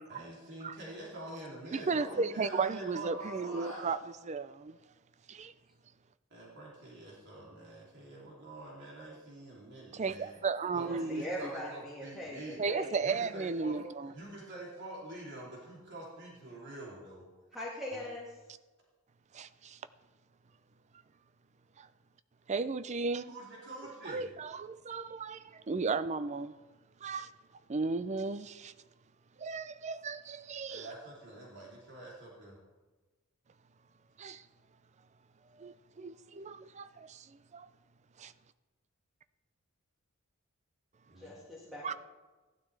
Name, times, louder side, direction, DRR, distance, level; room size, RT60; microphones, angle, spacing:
voice 1, 0.1-3.9 6.3-10.3 10.7-12.6 13.0-13.8 14.1-17.3 17.9-18.1 23.3-24.2 30.7-32.6 41.1-41.4, right 2 dB, 55° right, 3.0 m, -46 dB
voice 2, 1.7-4.0 4.2-4.8 5.3-5.5 9.9-11.3 12.6-14.1 19.3-19.8 21.8-21.9 22.5-23.3 24.1-26.5 27.0-27.3 27.7-28.7 29.4-30.9 34.2-34.4 35.6-37.7 38.2-38.3 41.8-41.9, right 4 dB, 30° right, 0.4 m, -35 dB
voice 3, 10.8-12.9 17.5-18.3 41.2-41.9, equal, ahead, 1.9 m, -41 dB
16.0 x 12.0 x 3.3 m
head